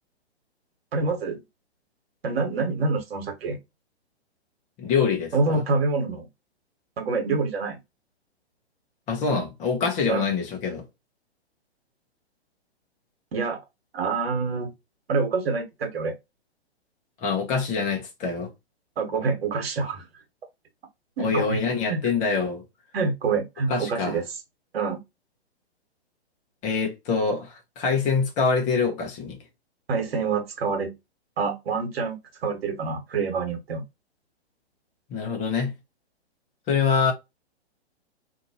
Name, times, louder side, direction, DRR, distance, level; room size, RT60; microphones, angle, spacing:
voice 1, 0.9-1.4 2.2-3.6 5.3-6.3 7.0-7.8 10.1-10.3 13.3-13.6 13.9-14.7 15.1-16.1 19.0-20.0 21.2-21.6 21.9-22.0 22.9-24.2 24.7-25.0 29.9-30.9 31.4-33.8, right 4 dB, 65° right, 1.3 m, -26 dB
voice 2, 4.8-5.6 9.1-10.8 17.2-18.5 21.2-22.6 23.7-24.2 26.6-29.4 35.1-35.7 36.7-37.1, left 5 dB, 20° left, 0.9 m, -25 dB
2.7 x 2.6 x 2.8 m
figure-of-eight pair, 125°, 33 cm